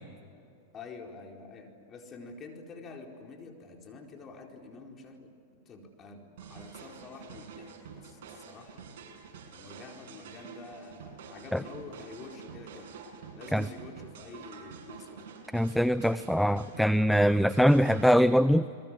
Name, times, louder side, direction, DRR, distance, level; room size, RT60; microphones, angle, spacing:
voice 1, 0.7-8.9 9.5-12.9 13.4-15.4, left 4 dB, 30° left, 2 dB, 4.4 m, -47 dB
sound 1, 6.4-18.2, right 6 dB, 65° right, 7.1 m, -47 dB
voice 2, 15.5-18.6, equal, ahead, 15 dB, 0.5 m, -23 dB
29.0 x 22.0 x 7.6 m, 2.6 s
hypercardioid pair, 120°, 0 cm